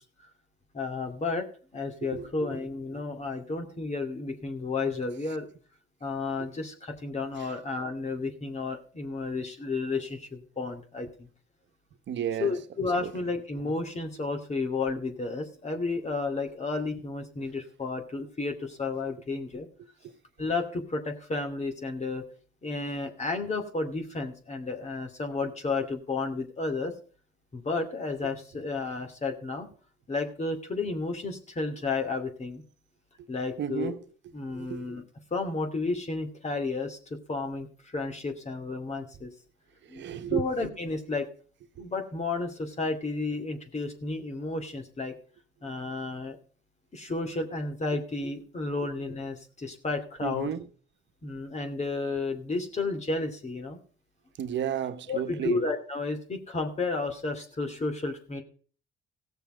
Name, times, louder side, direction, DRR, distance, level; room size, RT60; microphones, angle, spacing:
voice 1, 0.7-1.5 1.7-5.4 6.0-11.3 12.4-19.7 20.4-22.2 22.6-26.9 27.5-29.7 30.1-32.6 33.3-33.9 34.3-35.0 35.3-37.7 37.9-39.3 39.9-40.0 40.3-41.3 41.8-45.1 45.6-46.4 46.9-50.5 51.2-53.8 55.1-58.4, left 3 dB, 35° left, 2.5 m, -32 dB
voice 2, 12.1-12.6 13.0-13.1 33.6-34.0 34.6-34.9 39.9-40.4 41.8-41.9 50.2-50.7 54.4-55.6, right 9 dB, 65° right, 1.1 m, -32 dB
16.0 x 6.9 x 5.0 m
cardioid pair, 90°, 20 cm